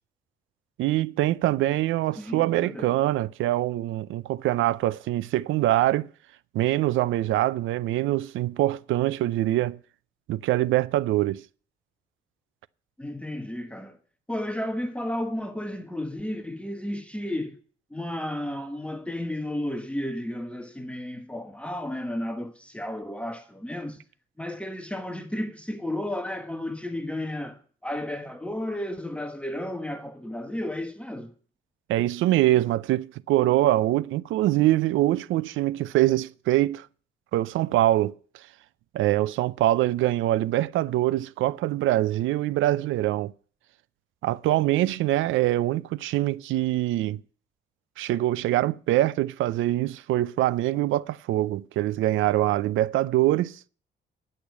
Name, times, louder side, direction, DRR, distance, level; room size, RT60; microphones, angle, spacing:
voice 1, 0.8-6.1 6.5-9.8 10.3-11.4 31.9-36.9 37.3-38.2 38.9-43.3 44.2-47.2 48.0-53.6, right 15 dB, 85° right, 0.5 m, -24 dB
voice 2, 2.2-3.0 13.0-14.0 14.3-17.6 17.9-24.0 24.4-31.3, left 1 dB, 5° left, 1.2 m, -33 dB
10.0 x 6.6 x 8.2 m
cardioid pair, 90°, 20 cm